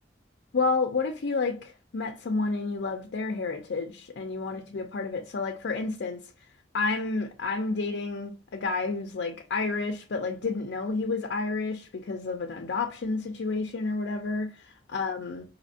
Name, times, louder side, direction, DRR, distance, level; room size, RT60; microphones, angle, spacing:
voice 1, 0.5-6.2 6.7-15.4, left 3 dB, 90° left, 0.5 m, -30 dB
5.1 x 2.7 x 2.7 m
head